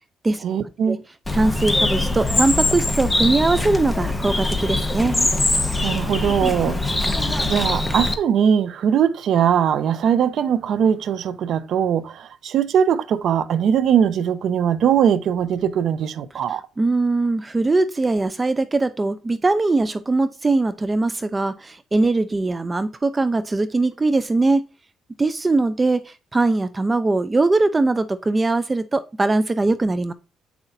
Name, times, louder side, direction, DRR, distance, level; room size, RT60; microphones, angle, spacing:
voice 1, 0.4-1.0 5.8-16.6, right 8 dB, 70° right, 0.6 m, -21 dB
Bird, 1.2-8.1, left 2 dB, 10° left, 1.0 m, -22 dB
voice 2, 1.3-5.2 16.8-24.6 25.2-30.1, right 2 dB, 25° right, 0.5 m, -21 dB
8.2 x 5.7 x 2.6 m
cardioid pair, 90°, 0 cm